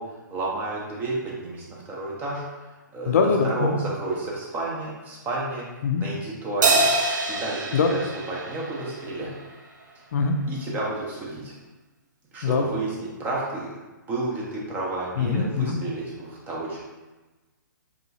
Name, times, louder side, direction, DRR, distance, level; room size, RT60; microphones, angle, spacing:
voice 1, 0.0-5.7 5.9-6.9 7.3-8.0 8.3-9.4 10.5-11.5 12.3-13.7 14.1-16.8, right 2 dB, 15° right, -4 dB, 0.5 m, -31 dB
voice 2, 3.1-3.8 5.8-6.0 7.7-7.9 10.1-10.4 12.4-12.7 15.2-15.8, left 5 dB, 50° left, 3 dB, 0.4 m, -22 dB
Crash cymbal, 6.6-9.3, right 2 dB, 65° right, 0.5 m, -24 dB
2.8 x 2.3 x 2.6 m, 1.2 s
hypercardioid pair, 135°, 11 cm